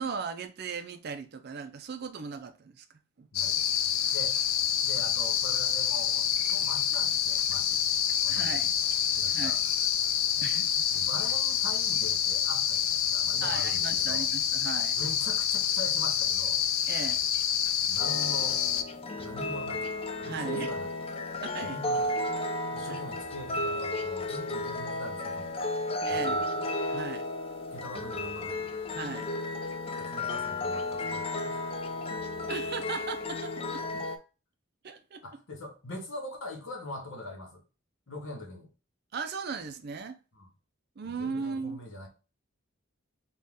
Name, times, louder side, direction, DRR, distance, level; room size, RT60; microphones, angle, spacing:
voice 1, 0.0-2.8 3.2-3.3 8.3-8.7 9.3-9.6 10.4-10.9 13.4-15.0 16.9-17.2 20.2-20.7 21.4-21.8 22.9-23.0 26.1-26.4 26.9-27.3 28.9-29.3 32.5-33.8 34.8-35.2 39.1-40.2 41.0-41.8, right 5 dB, 50° right, 0.5 m, -37 dB
sound 1, 3.3-18.8, left 9 dB, 85° left, 0.5 m, -27 dB
voice 2, 3.3-3.7 4.1-4.4 4.8-7.8 8.2-8.7 9.1-9.9 10.4-10.5 10.9-14.3 15.0-16.6 17.8-18.9 19.2-21.0 21.6-22.3 22.7-25.7 26.1-26.4 27.7-28.7 30.0-31.7 35.2-37.6 38.1-38.7 40.3-40.5 41.0-42.1, left 1 dB, 70° left, 1.1 m, -43 dB
sound 2, 18.0-34.2, left 1 dB, 30° left, 0.4 m, -33 dB
4.1 x 2.4 x 3.5 m
head